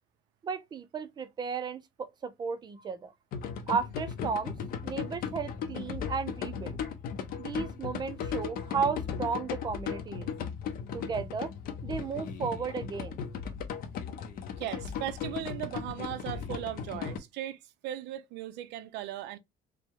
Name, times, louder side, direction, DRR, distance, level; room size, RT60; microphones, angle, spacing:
voice 1, 0.4-3.1 3.7-4.5 4.8-6.8 7.4-10.3 10.9-11.5 11.8-13.2, right 6 dB, 25° right, 0.5 m, -34 dB
sound 1, 3.3-17.2, left 7 dB, 55° left, 0.8 m, -37 dB
voice 2, 14.6-19.4, right 12 dB, 80° right, 0.6 m, -38 dB
4.9 x 2.1 x 3.5 m
cardioid pair, 170°, 18 cm